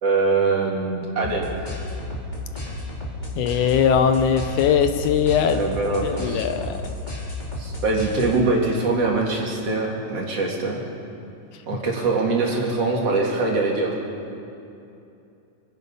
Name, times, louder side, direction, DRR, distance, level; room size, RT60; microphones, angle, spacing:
voice 1, 0.0-1.5 5.5-6.5 7.6-10.8 11.7-13.9, right 3 dB, 50° right, -2 dB, 3.0 m, -23 dB
sound 1, 1.2-8.7, left 1 dB, 15° left, 2.4 m, -32 dB
voice 2, 3.4-5.6 6.0-6.8, left 7 dB, 80° left, 8 dB, 2.1 m, -20 dB
27.0 x 9.8 x 5.5 m, 2.7 s
omnidirectional pair, 3.7 m